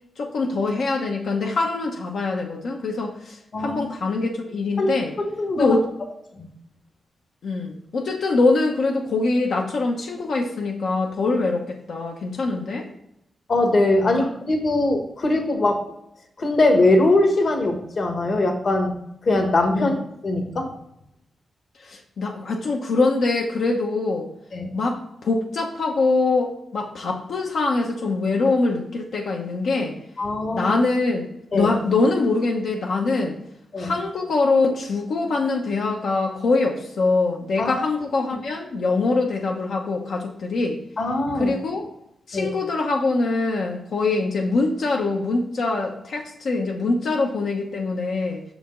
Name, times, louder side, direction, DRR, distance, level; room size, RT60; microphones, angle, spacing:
voice 1, 0.2-5.1 5.6-5.8 7.4-12.9 14.0-14.1 19.7-19.9 21.8-24.3 24.7-30.0 30.5-31.3 31.5-33.4 33.8-40.8 41.4-41.8 42.3-48.4, left 3 dB, 70° left, 0 dB, 0.9 m, -23 dB
voice 2, 4.8-5.8 6.3-6.5 13.5-15.8 16.4-18.9 19.2-19.9 20.2-20.7 24.5-24.7 30.2-30.7 31.5-31.7 33.7-33.9 37.6-37.8 41.0-41.5 42.3-42.5, left 2 dB, 45° left, 4 dB, 1.2 m, -21 dB
6.3 x 5.1 x 3.8 m, 0.78 s
wide cardioid pair, 140°, 0 cm